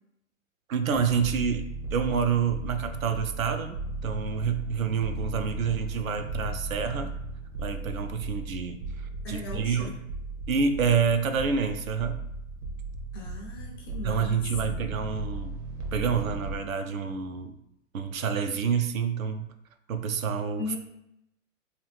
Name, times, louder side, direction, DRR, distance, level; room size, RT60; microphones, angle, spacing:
voice 1, 0.7-7.1 7.6-10.0 10.5-12.2 14.0-15.5 15.9-17.6 17.9-19.5 19.9-20.6, right 6 dB, 85° right, 7 dB, 0.5 m, -28 dB
sound 1, 0.9-16.6, right 2 dB, 60° right, 0.8 m, -36 dB
voice 2, 9.2-9.9 13.1-14.9 20.6-20.8, left 3 dB, 20° left, -2 dB, 0.3 m, -38 dB
2.8 x 2.3 x 3.2 m, 0.81 s
hypercardioid pair, 120°, 40 cm